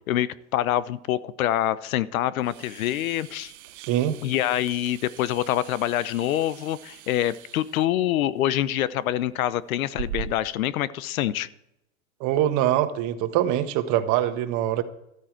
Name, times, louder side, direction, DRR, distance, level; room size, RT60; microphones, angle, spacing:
voice 1, 0.1-3.5 4.2-11.5, left 12 dB, 80° left, 0.9 m, -26 dB
Man inhale and exhale vape, 2.4-10.6, right 10 dB, 85° right, 1.2 m, -42 dB
voice 2, 3.7-4.2 12.2-14.8, right 12 dB, 45° right, 1.4 m, -23 dB
13.0 x 13.0 x 4.5 m
supercardioid pair, 125°, 41 cm